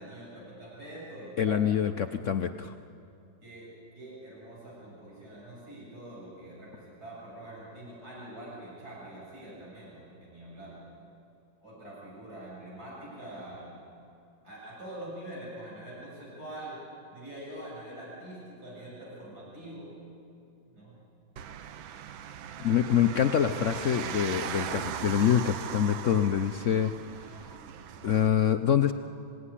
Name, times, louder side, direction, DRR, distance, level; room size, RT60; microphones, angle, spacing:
voice 1, 0.0-1.7 3.4-3.7 3.9-10.8 11.6-13.8 14.4-16.8 17.1-20.0 20.7-20.9, right 1 dB, 50° right, -5 dB, 8.0 m, -44 dB
voice 2, 1.4-2.7 22.6-26.9 28.0-28.9, left 9 dB, 75° left, 7 dB, 0.7 m, -25 dB
sound 1, 21.4-28.3, right 8 dB, 80° right, 1.6 m, -39 dB
25.0 x 17.0 x 10.0 m, 2.5 s
omnidirectional pair, 2.2 m